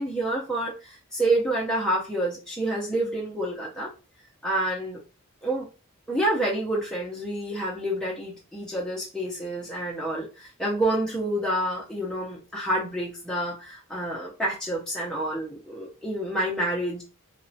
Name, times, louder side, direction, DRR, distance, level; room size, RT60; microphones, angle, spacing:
voice 1, 0.0-3.9 4.4-5.0 5.4-5.7 6.1-17.0, right 1 dB, 5° left, -5 dB, 0.5 m, -28 dB
2.9 x 2.1 x 2.6 m, 0.32 s
head